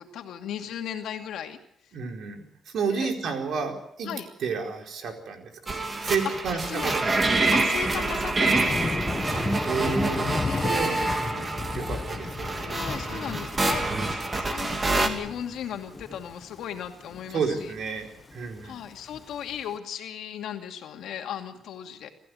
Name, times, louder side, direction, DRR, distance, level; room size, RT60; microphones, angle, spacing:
voice 1, 0.0-1.6 2.9-3.1 4.0-4.3 6.7-6.9 7.5-9.0 10.4-11.2 12.6-17.7 18.6-22.1, left 9 dB, 85° left, 5 dB, 2.5 m, -36 dB
voice 2, 1.9-4.1 4.4-5.7 6.0-7.1 9.3-11.5 11.7-13.4 17.3-18.7, right 5 dB, 70° right, 3 dB, 4.5 m, -31 dB
sound 1, 5.7-15.1, right 2 dB, 25° right, 2.7 m, -27 dB
Thunder, 8.5-19.6, left 3 dB, 25° left, 1.3 m, -34 dB
27.0 x 15.0 x 7.9 m, 0.76 s
cardioid pair, 125°, 0 cm